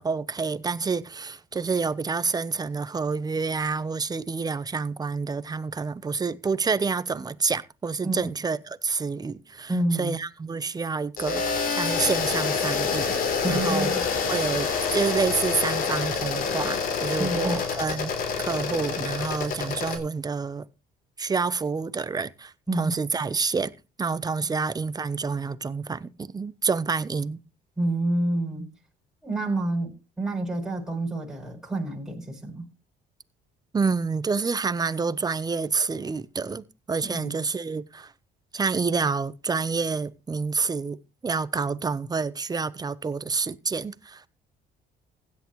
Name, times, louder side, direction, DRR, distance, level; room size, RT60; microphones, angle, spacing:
voice 1, 0.0-13.1 13.5-13.9 14.3-18.1 18.4-20.7 21.2-23.7 24.0-27.4 33.7-38.1 38.5-41.0 41.2-44.3, right 4 dB, 25° right, 0.9 m, -28 dB
voice 2, 9.7-10.1 13.4-14.0 17.2-17.6 22.7-22.9 27.8-28.7 29.2-32.7 37.0-37.3, right 2 dB, 5° right, 7.2 m, -28 dB
sound 1, 11.2-20.0, left 5 dB, 60° left, 3.7 m, -27 dB
16.0 x 10.5 x 3.2 m
cardioid pair, 110°, 17 cm